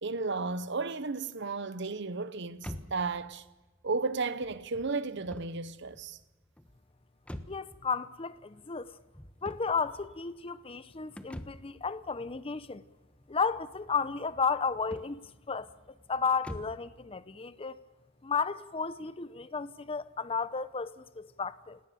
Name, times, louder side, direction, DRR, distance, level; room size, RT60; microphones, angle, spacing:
voice 1, 0.0-3.4 3.8-6.2, right 4 dB, 65° right, 1.0 m, -34 dB
sound 1, 2.6-16.9, equal, 5° left, 1.2 m, -49 dB
voice 2, 7.5-8.9 9.4-12.8 13.3-15.2 15.5-15.7 16.1-17.8 18.2-21.8, left 5 dB, 30° left, 0.7 m, -33 dB
30.0 x 18.0 x 6.9 m
head